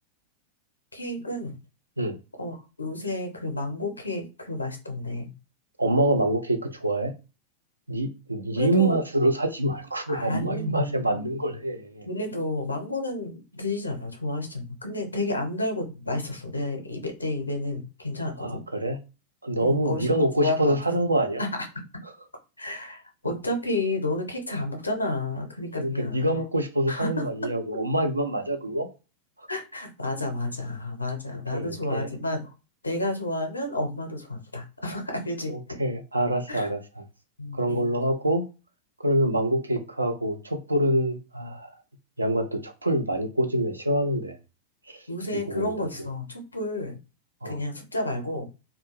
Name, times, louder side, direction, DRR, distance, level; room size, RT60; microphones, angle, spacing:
voice 1, 0.9-1.6 2.4-5.3 8.5-9.0 10.1-11.3 12.1-18.6 19.6-20.8 21.4-21.5 22.6-26.4 26.9-27.1 29.5-32.5 32.8-35.8 36.5-36.7 37.4-37.9 45.1-47.0 47.4-48.5, left 2 dB, 80° left, 0.6 m, -31 dB
voice 2, 5.8-7.1 7.9-12.1 18.4-19.0 19.4-21.4 25.7-28.9 31.5-32.1 35.5-36.8 37.6-38.5 39.0-41.7 42.2-44.4 45.3-45.9 47.4-47.6, right 1 dB, 80° right, 0.4 m, -26 dB
2.2 x 2.1 x 3.1 m
figure-of-eight pair, 90°, 0 cm